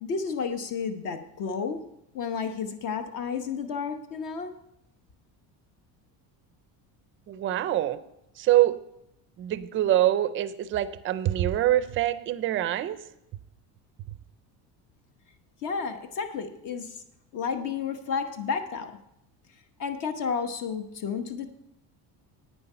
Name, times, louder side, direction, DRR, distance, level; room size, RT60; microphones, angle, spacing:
voice 1, 0.0-1.8 2.1-4.5 15.6-17.0 17.3-18.9 19.8-21.5, left 6 dB, 50° left, 8 dB, 1.0 m, -31 dB
voice 2, 7.3-8.0 8.4-8.8 9.4-13.0 14.1-14.2, right 13 dB, 30° right, 14 dB, 0.4 m, -25 dB
9.9 x 9.2 x 5.5 m, 0.81 s
cardioid pair, 180°, 41 cm